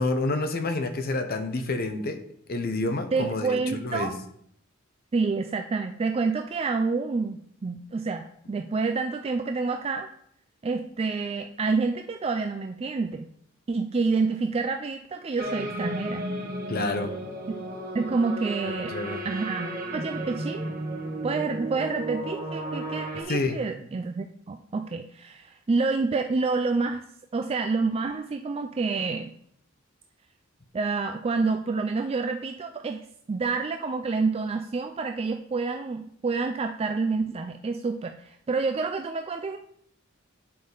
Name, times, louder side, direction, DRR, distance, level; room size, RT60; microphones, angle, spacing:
voice 1, 0.0-2.2 2.5-4.1 16.7-17.1 18.6-19.2 23.3-23.6, left 2 dB, 50° left, 8 dB, 0.8 m, -28 dB
voice 2, 3.1-4.1 5.1-10.1 10.6-13.3 13.7-16.3 17.9-19.0 19.2-20.7 21.2-27.0 27.3-29.3 30.7-33.0 33.3-39.6, right 4 dB, 30° right, 6 dB, 0.3 m, -28 dB
sound 1, 15.4-23.2, right 1 dB, 45° right, 1.5 m, -34 dB
8.6 x 5.2 x 3.9 m, 0.69 s
head